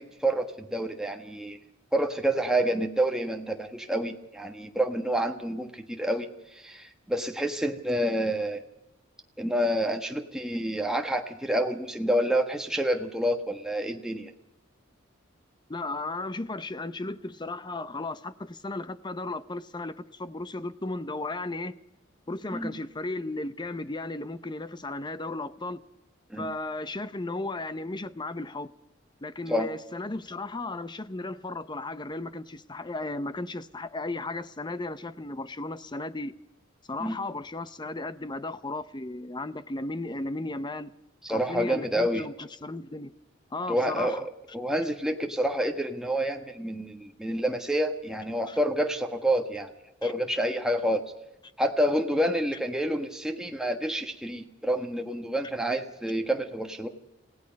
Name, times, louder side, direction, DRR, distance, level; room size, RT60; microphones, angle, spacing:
voice 1, 0.0-1.6 1.9-8.6 9.4-14.3 22.5-22.7 26.3-26.5 29.5-29.7 37.0-37.2 41.2-42.2 43.7-44.2 44.5-49.7 50.0-51.1 51.6-56.9, right 1 dB, 5° right, 1.3 m, -28 dB
voice 2, 15.7-21.8 22.3-25.8 26.4-28.7 29.2-36.3 36.9-40.9 41.3-43.1 43.5-44.3 48.5-48.6 50.0-50.1, left 2 dB, 25° left, 0.7 m, -35 dB
29.0 x 17.0 x 5.3 m
head